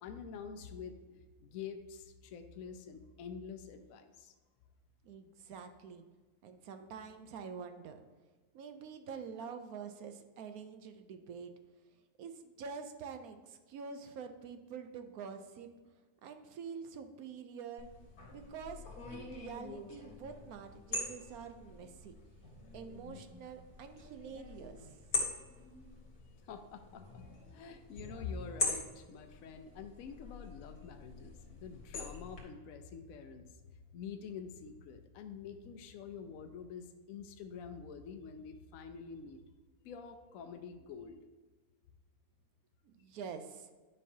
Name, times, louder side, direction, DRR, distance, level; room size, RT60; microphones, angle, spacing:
voice 1, 0.0-4.3 26.4-27.2 27.5-33.4 33.9-39.4 39.8-41.2, left 6 dB, 70° left, 6 dB, 1.0 m, -47 dB
voice 2, 5.0-6.0 6.4-8.0 8.5-11.5 12.2-15.7 16.2-17.9 18.3-22.1 22.7-24.9 42.8-43.7, right 6 dB, 75° right, 7 dB, 1.1 m, -46 dB
sound 1, 17.8-32.4, left 2 dB, 90° left, 2.1 m, -43 dB
9.9 x 5.3 x 2.8 m, 1.3 s
omnidirectional pair, 1.6 m